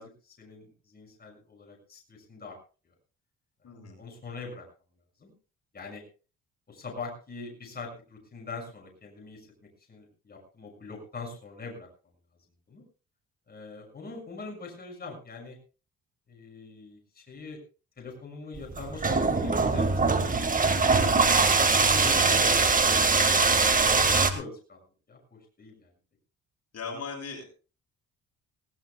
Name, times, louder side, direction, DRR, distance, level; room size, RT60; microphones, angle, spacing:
voice 1, 0.0-2.6 3.6-4.6 5.2-5.3 5.7-6.0 6.7-9.5 9.8-11.9 12.7-12.8 13.5-15.6 16.3-17.6 18.0-20.8 21.8-23.5 23.7-25.9, left 3 dB, 30° left, 1 dB, 6.8 m, -43 dB
voice 2, 3.6-3.9 20.9-21.3 26.7-27.4, left 5 dB, 55° left, 1 dB, 6.7 m, -39 dB
sound 1, 18.6-24.3, right 4 dB, 25° right, 1.8 m, -22 dB
20.0 x 18.0 x 2.3 m, 0.36 s
cardioid pair, 90°, 30 cm